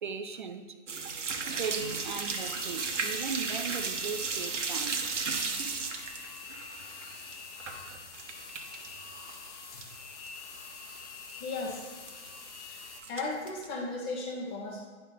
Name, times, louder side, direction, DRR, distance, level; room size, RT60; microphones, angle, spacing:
voice 1, 0.0-0.8 1.3-5.6, right 5 dB, 40° right, 0.5 m, -38 dB
sound 1, 0.9-8.9 9.2-10.0 10.2-10.3 10.8-10.9 11.0-11.3 12.1-12.6 13.0-13.7, right 5 dB, 70° right, 1.2 m, -35 dB
sound 2, 1.6-13.0, left 4 dB, 65° left, 1.3 m, -45 dB
voice 2, 11.4-11.9 12.6-14.8, left 3 dB, 20° left, 1.2 m, -36 dB
9.9 x 3.8 x 5.5 m
hypercardioid pair, 160°, 37 cm